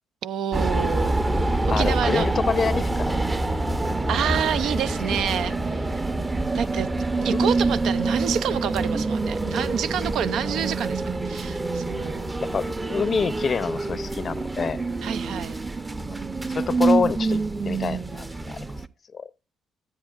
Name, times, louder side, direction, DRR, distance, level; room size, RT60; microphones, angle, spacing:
voice 1, 0.2-1.5 1.8-2.3 4.1-6.0 6.5-6.9 7.2-12.3 15.0-15.6, right 8 dB, 75° right, 0.5 m, -28 dB
sound 1, 0.5-18.9, right 2 dB, 20° right, 0.7 m, -26 dB
voice 2, 1.7-3.2 3.7-3.8 7.3-7.5 10.5-10.7 12.0-12.1 12.4-14.8 16.5-18.7 19.1-19.3, left 6 dB, 45° left, 0.6 m, -27 dB
12.5 x 8.5 x 2.4 m
cardioid pair, 90°, 0 cm